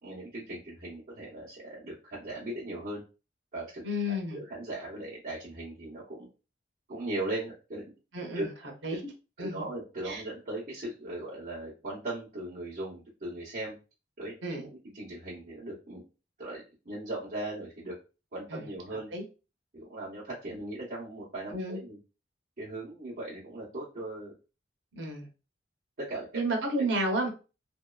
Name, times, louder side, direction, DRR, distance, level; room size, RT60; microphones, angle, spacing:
voice 1, 0.0-3.0 3.5-6.3 6.9-7.8 8.3-8.5 9.4-13.7 14.2-16.0 16.4-17.9 18.3-19.1 19.7-22.0 22.6-24.3 26.0-26.3, right 2 dB, 45° right, -9 dB, 1.0 m, -38 dB
voice 2, 3.8-4.4 8.1-8.5 8.8-9.0 9.4-9.7 10.0-10.2 14.4-14.6 18.5-18.6 19.1-19.2 21.5-21.8 24.9-25.3 26.3-27.3, right 1 dB, 75° right, 2 dB, 0.8 m, -31 dB
2.7 x 2.3 x 2.3 m, 0.32 s
head